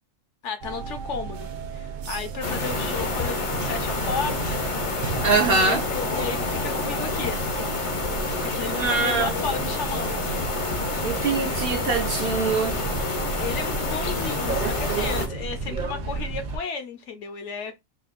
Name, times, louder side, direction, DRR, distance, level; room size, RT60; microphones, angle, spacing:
voice 1, 0.4-3.4 3.7-4.7 5.5-7.5 8.4-10.3 13.4-17.8, left 6 dB, 65° left, 0.9 m, -33 dB
sound 1, 0.6-16.6, right 5 dB, 80° right, 0.4 m, -33 dB
sound 2, 2.4-15.3, left 3 dB, 35° left, 0.5 m, -28 dB
voice 2, 5.2-5.8 8.7-9.3 11.0-12.8, right 4 dB, 50° right, 0.8 m, -23 dB
4.2 x 2.3 x 2.4 m
omnidirectional pair, 1.4 m